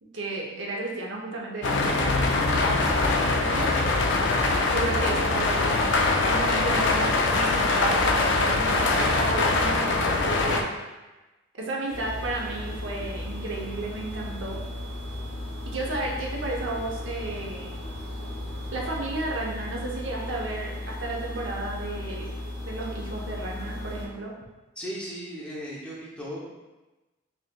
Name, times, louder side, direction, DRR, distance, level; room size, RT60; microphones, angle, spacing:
voice 1, 0.0-2.2 3.4-3.7 4.7-10.6 11.5-14.6 15.7-17.7 18.7-22.2 22.6-24.3, right 2 dB, 70° right, -2 dB, 0.8 m, -33 dB
sound 1, 1.6-10.6, left 3 dB, 60° left, 0.4 m, -23 dB
sound 2, 11.9-24.1, left 1 dB, 80° left, 1.1 m, -36 dB
voice 2, 24.8-26.7, equal, 5° left, -7 dB, 0.6 m, -37 dB
5.5 x 2.9 x 2.3 m, 1.1 s
head